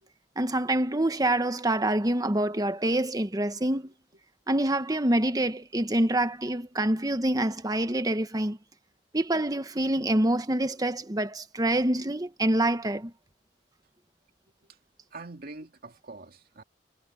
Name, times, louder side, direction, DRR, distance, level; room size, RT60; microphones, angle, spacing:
voice 1, 0.4-3.9 4.5-8.6 9.1-13.1, right 1 dB, 20° right, 1.2 m, -26 dB
voice 2, 15.1-16.6, right 3 dB, 55° right, 2.5 m, -44 dB
head